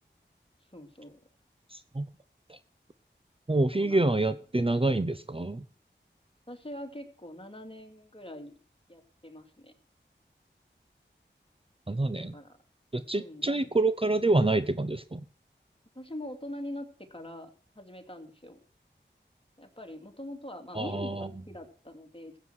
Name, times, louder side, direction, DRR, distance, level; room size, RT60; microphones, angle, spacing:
voice 1, 0.7-1.2 3.7-4.1 6.5-8.5 8.9-9.7 12.3-12.6 13.1-13.7 15.9-18.6 19.6-22.3, left 1 dB, 30° left, 2.6 m, -43 dB
voice 2, 1.7-2.1 2.5-2.6 3.5-5.6 11.9-12.3 12.9-15.2 20.7-21.3, right 2 dB, 30° right, 0.7 m, -27 dB
15.5 x 8.0 x 6.3 m
wide cardioid pair, 40°, 20 cm